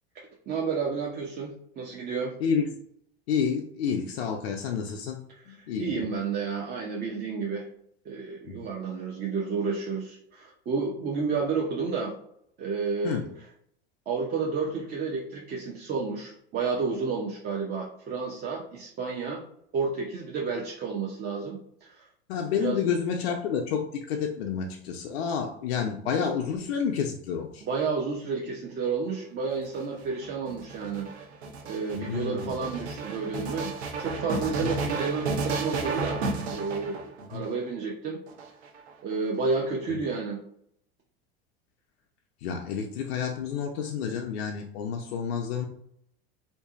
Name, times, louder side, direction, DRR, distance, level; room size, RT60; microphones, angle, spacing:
voice 1, 0.1-2.3 5.3-7.7 8.0-12.1 12.6-13.2 14.1-19.4 19.7-22.1 22.6-22.9 27.6-31.1 31.6-33.7 34.0-36.2 36.5-38.2 39.0-40.4, right 4 dB, 30° right, -2 dB, 0.5 m, -31 dB
voice 2, 2.4-2.7 3.3-5.2 5.5-6.1 8.5-8.6 13.0-13.3 22.3-27.6 31.9-32.5 34.5-34.7 37.2-37.5 39.9-40.0 42.4-45.7, left 7 dB, 80° left, 2 dB, 0.5 m, -29 dB
sound 1, 29.5-37.5 38.3-39.1, right 4 dB, 80° right, 0.6 m, -33 dB
2.7 x 2.5 x 2.4 m, 0.69 s
hypercardioid pair, 85°, 31 cm